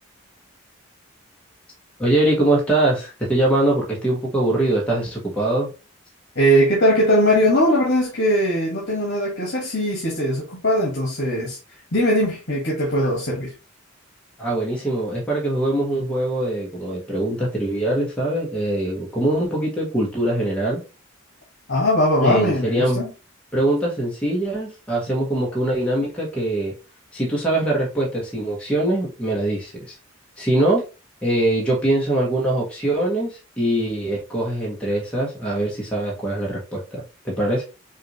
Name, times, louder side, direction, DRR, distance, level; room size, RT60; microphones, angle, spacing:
voice 1, 2.0-5.7 14.4-20.8 22.2-23.0 23.5-26.7 27.1-30.0 30.4-30.8 31.2-37.6, right 1 dB, 5° left, 1.2 m, -22 dB
voice 2, 6.3-11.6 11.9-13.5 21.7-23.1, equal, 60° left, 1.5 m, -20 dB
5.6 x 2.6 x 2.9 m
head